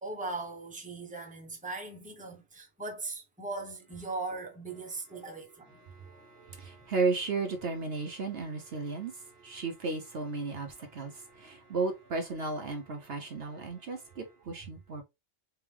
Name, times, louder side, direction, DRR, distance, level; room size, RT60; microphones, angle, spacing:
voice 1, 0.0-5.8, right 3 dB, 5° right, 1.0 m, -39 dB
voice 2, 5.8-15.0, right 4 dB, 60° right, 1.0 m, -34 dB
3.9 x 3.5 x 3.3 m
omnidirectional pair, 1.3 m